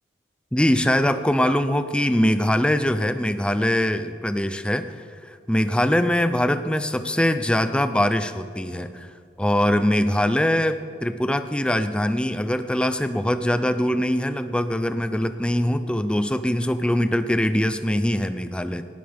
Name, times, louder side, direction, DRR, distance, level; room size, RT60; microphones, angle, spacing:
voice 1, 0.5-5.0 5.2-9.1 9.4-18.8, left 1 dB, 5° left, 10 dB, 0.4 m, -22 dB
18.0 x 12.5 x 3.5 m, 2.3 s
head